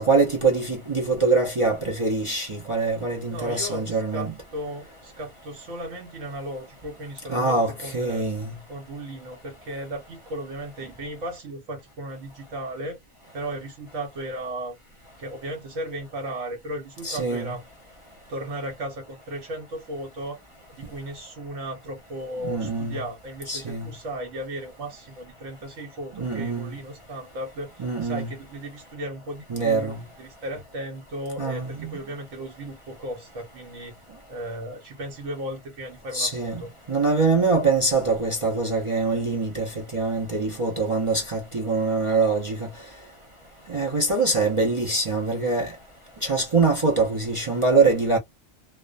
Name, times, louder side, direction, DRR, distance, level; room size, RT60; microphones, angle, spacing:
voice 1, 0.0-4.3 7.3-8.5 17.0-17.5 22.4-23.0 23.5-23.9 26.2-26.7 27.8-28.3 29.5-30.0 31.4-31.9 36.1-36.6 36.9-42.7 43.7-45.7 46.2-48.2, right 3 dB, 45° right, 0.4 m, -24 dB
voice 2, 3.3-8.3 8.7-13.0 13.3-14.8 15.2-17.6 18.3-20.4 20.8-33.9 34.3-36.7, right 1 dB, 75° right, 1.2 m, -36 dB
2.4 x 2.1 x 2.4 m
omnidirectional pair, 1.4 m